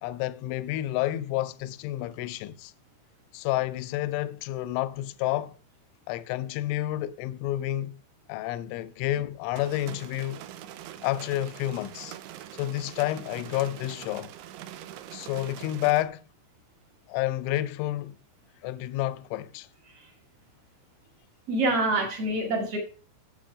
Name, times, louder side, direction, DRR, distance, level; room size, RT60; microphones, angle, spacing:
voice 1, 0.0-2.7 3.3-5.6 6.1-8.0 8.3-10.4 11.0-12.2 12.5-14.3 15.1-16.2 17.1-18.2 18.6-19.7, left 14 dB, 85° left, 2.9 m, -30 dB
sound 1, 9.6-16.0, right 12 dB, 90° right, 2.4 m, -43 dB
voice 2, 21.5-22.8, right 2 dB, 50° right, 1.8 m, -26 dB
9.0 x 7.5 x 4.9 m
omnidirectional pair, 5.7 m